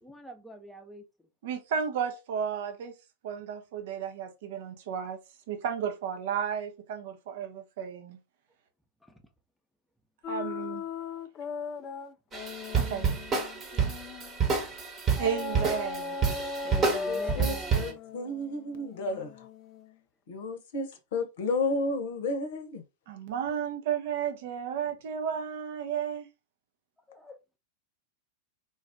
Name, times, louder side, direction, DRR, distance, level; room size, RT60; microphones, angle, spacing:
voice 1, 0.0-1.3 9.0-9.2 16.7-18.0 27.1-27.4, left 1 dB, 5° left, 0.8 m, -44 dB
voice 2, 1.4-2.9 3.2-5.2 5.5-8.2 10.3-10.8 12.7-13.1 15.2-16.2 23.1-26.3, right 8 dB, 55° right, 0.6 m, -33 dB
sound 1, 10.2-14.4 15.2-19.9, left 5 dB, 35° left, 0.3 m, -38 dB
sound 2, 12.3-17.9, right 5 dB, 25° right, 1.1 m, -29 dB
voice 3, 17.1-19.5 20.3-22.8, left 2 dB, 55° left, 0.8 m, -32 dB
3.9 x 2.4 x 3.5 m
figure-of-eight pair, 90°, 0 cm